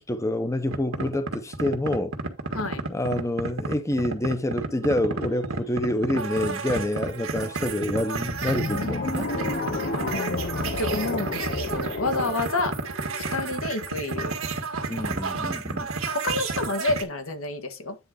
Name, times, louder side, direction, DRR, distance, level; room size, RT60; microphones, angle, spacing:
voice 1, 0.0-2.1 2.9-9.3 14.9-15.9, left 1 dB, 15° left, 0.7 m, -27 dB
sound 1, 0.7-17.0, right 3 dB, 85° right, 1.7 m, -31 dB
sound 2, 8.3-13.5, left 3 dB, 50° left, 0.8 m, -31 dB
voice 2, 10.1-12.7 13.2-14.3 16.1-18.0, left 2 dB, 80° left, 1.6 m, -29 dB
9.6 x 3.8 x 5.1 m
head